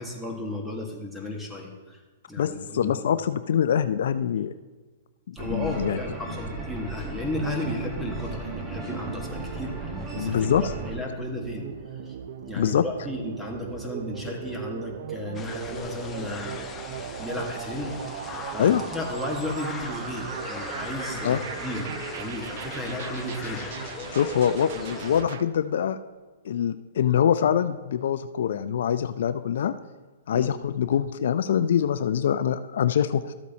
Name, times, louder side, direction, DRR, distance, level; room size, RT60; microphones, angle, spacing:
voice 1, 0.0-2.0 2.3-3.0 5.3-9.8 10.1-11.7 12.0-12.2 12.4-16.6 17.2-24.0 30.3-30.5, left 1 dB, ahead, 0 dB, 1.5 m, -34 dB
voice 2, 2.4-4.5 5.3-6.0 10.1-10.7 12.6-12.8 18.6-18.8 21.2-21.4 24.1-26.0 26.4-29.7 30.3-33.3, left 9 dB, 70° left, 13 dB, 0.3 m, -24 dB
sound 1, 5.4-11.0, right 2 dB, 20° right, 1.3 m, -36 dB
sound 2, 7.1-25.4, right 9 dB, 60° right, 0.5 m, -38 dB
sound 3, 15.3-25.2, left 5 dB, 20° left, 0.8 m, -39 dB
13.5 x 8.3 x 2.8 m, 1.3 s
hypercardioid pair, 135°, 0 cm